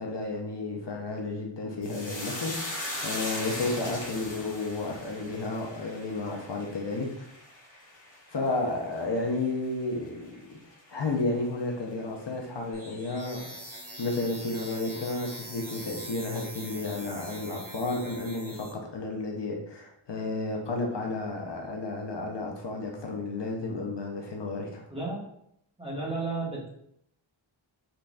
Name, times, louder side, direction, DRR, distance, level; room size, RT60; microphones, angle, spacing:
voice 1, 0.0-7.3 8.3-13.5 14.0-24.8, left 2 dB, 55° left, 0 dB, 0.7 m, -32 dB
sound 1, 1.8-10.4 10.7-11.4 11.7-11.9, left 1 dB, 40° left, 1.0 m, -39 dB
sound 2, 12.7-18.7, right 1 dB, 40° right, 0.9 m, -43 dB
voice 2, 24.9-25.3 25.8-26.7, right 3 dB, 10° right, -5 dB, 1.1 m, -33 dB
4.0 x 3.1 x 2.3 m, 0.75 s
wide cardioid pair, 60°, 49 cm